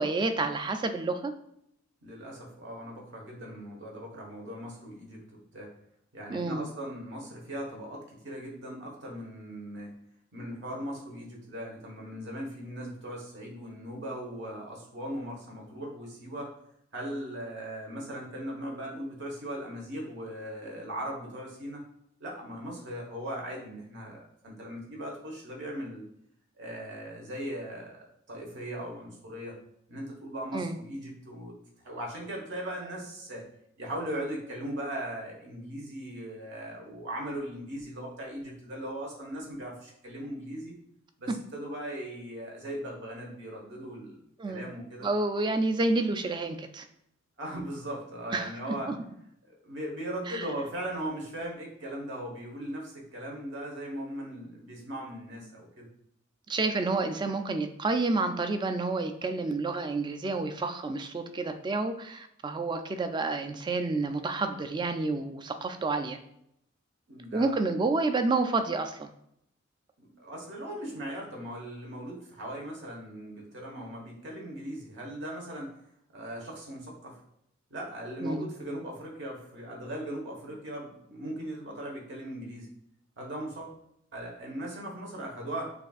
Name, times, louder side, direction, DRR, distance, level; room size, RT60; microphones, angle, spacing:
voice 1, 0.0-1.3 6.3-6.6 30.5-30.8 44.4-44.7 45.0-46.9 48.3-48.5 48.9-49.0 50.3-50.4 56.5-66.2 67.3-69.1 78.2-78.4, right 3 dB, 20° right, 7 dB, 0.3 m, -29 dB
voice 2, 2.0-5.7 6.1-9.9 10.3-16.5 16.9-21.8 22.2-26.0 26.6-29.5 29.9-33.4 33.8-40.7 41.2-45.1 47.4-48.9 49.4-55.9 67.1-67.6 70.0-75.7 76.1-77.2 77.7-82.7 83.2-83.8 84.1-85.7, right 1 dB, 60° right, 0 dB, 1.2 m, -39 dB
6.6 x 2.6 x 2.4 m, 0.74 s
head